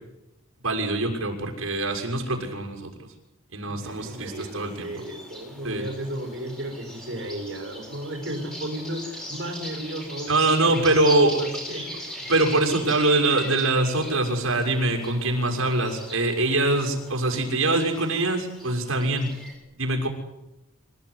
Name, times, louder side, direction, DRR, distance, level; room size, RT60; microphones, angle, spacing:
voice 1, 0.6-3.1 3.5-4.9 5.6-5.8 10.3-11.4 12.3-19.3 19.8-20.1, right 2 dB, 70° right, 2 dB, 6.3 m, -23 dB
sound 1, 3.8-19.5, equal, 5° left, 7.4 m, -40 dB
voice 2, 3.9-11.9, right 1 dB, 55° right, 1 dB, 5.8 m, -34 dB
27.0 x 17.5 x 10.0 m, 0.94 s
head